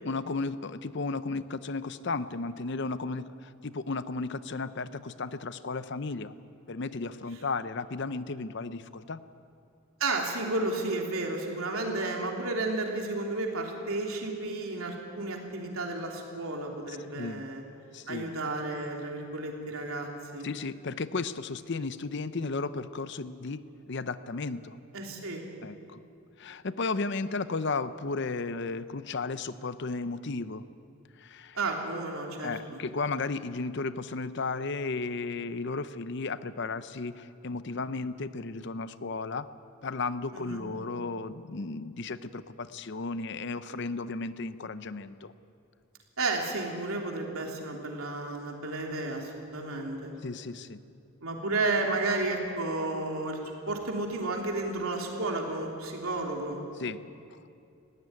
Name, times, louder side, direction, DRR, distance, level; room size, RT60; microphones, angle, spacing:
voice 1, 0.0-6.3 6.7-9.2 16.9-17.4 17.9-18.3 20.4-24.8 25.6-26.0 26.4-30.6 31.2-31.6 32.4-39.5 39.8-45.3 50.2-50.8 56.8-57.0, left 3 dB, 55° left, 14 dB, 0.6 m, -34 dB
voice 2, 10.0-17.6 18.1-20.5 24.9-25.4 31.5-32.8 40.3-40.6 46.2-50.1 51.2-56.6, right 2 dB, 75° right, 1 dB, 3.2 m, -32 dB
19.5 x 16.0 x 9.6 m, 2.5 s
head